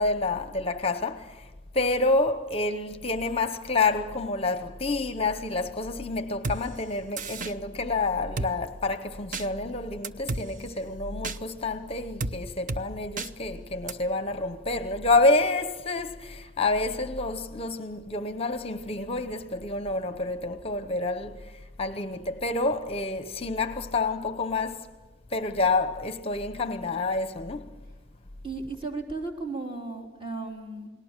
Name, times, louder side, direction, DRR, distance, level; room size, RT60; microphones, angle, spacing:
voice 1, 0.0-24.9 25.3-27.8, left 3 dB, 30° left, 0.9 m, -28 dB
Drum kit, 6.4-6.6 7.2-7.5 8.4-8.5 9.3-9.5 10.0-10.4 11.2-11.4 12.2-12.4 12.7-12.8 13.2-13.3 13.9-14.0, right 3 dB, 45° right, 0.8 m, -30 dB
voice 2, 28.4-30.9, right 3 dB, 30° right, 3.6 m, -35 dB
29.5 x 20.0 x 7.4 m
head